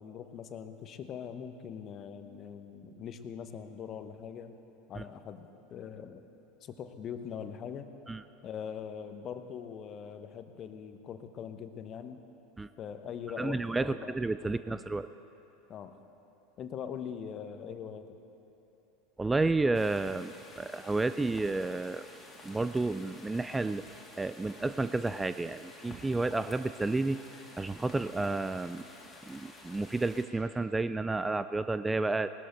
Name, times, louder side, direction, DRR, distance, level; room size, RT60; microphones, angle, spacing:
voice 1, 0.0-4.5 4.9-5.4 5.7-6.2 6.6-7.9 8.4-12.2 12.8-14.8 15.7-16.0 16.6-18.2, left 7 dB, 35° left, 9 dB, 0.9 m, -42 dB
voice 2, 13.4-15.1 19.2-22.1 22.4-23.8 24.2-27.2 27.6-28.8 29.3-32.3, right 3 dB, 10° right, 12 dB, 0.3 m, -31 dB
sound 1, 19.7-30.2, left 2 dB, 20° left, 2.2 m, -51 dB
19.0 x 13.0 x 4.5 m, 3.0 s
figure-of-eight pair, 80°, 0 cm